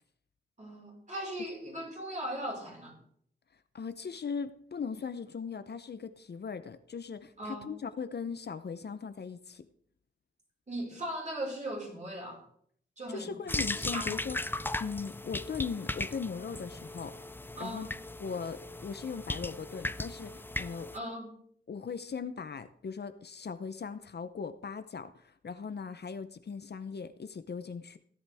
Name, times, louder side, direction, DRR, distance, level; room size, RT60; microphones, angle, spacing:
voice 1, 0.6-2.9 7.4-7.7 10.7-12.4 13.0-13.3 13.9-14.2 17.6-17.9 20.9-21.3, right 1 dB, 35° right, -1 dB, 5.0 m, -38 dB
voice 2, 3.7-9.7 13.1-14.4 14.8-17.2 17.6-17.9 18.2-20.9 21.7-28.0, left 5 dB, 55° left, 11 dB, 0.7 m, -39 dB
sound 1, 13.5-21.0, left 2 dB, 10° left, 0.4 m, -37 dB
16.5 x 11.0 x 3.5 m, 0.64 s
wide cardioid pair, 100°, 20 cm